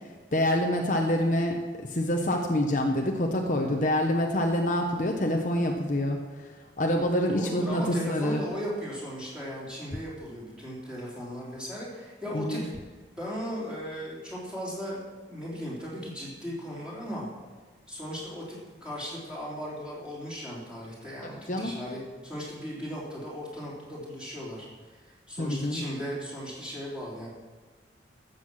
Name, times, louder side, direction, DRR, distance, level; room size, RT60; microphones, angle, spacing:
voice 1, 0.3-6.5 6.8-8.4 12.3-12.7 21.5-21.7 25.4-25.8, left 1 dB, 45° left, 2 dB, 0.9 m, -26 dB
voice 2, 7.3-12.6 13.2-15.0 15.3-17.3 17.9-27.3, equal, 5° right, -7 dB, 3.9 m, -37 dB
13.0 x 8.1 x 6.5 m, 1.4 s
head